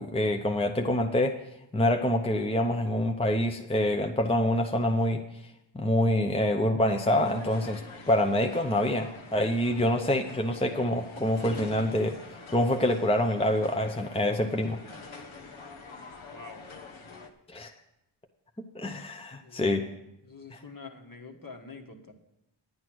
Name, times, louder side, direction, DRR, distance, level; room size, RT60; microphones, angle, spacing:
voice 1, 0.0-1.4 1.7-5.2 5.7-7.8 8.1-12.2 12.5-14.8 17.5-17.7 18.7-19.8 20.5-20.6, left 1 dB, 10° left, 4 dB, 0.7 m, -26 dB
sound 1, 7.1-17.3, left 3 dB, 85° left, 1.2 m, -46 dB
voice 2, 16.3-16.6 19.4-19.8 20.2-22.1, left 4 dB, 45° left, 4 dB, 1.6 m, -46 dB
10.5 x 9.4 x 6.2 m, 0.88 s
wide cardioid pair, 70°, 47 cm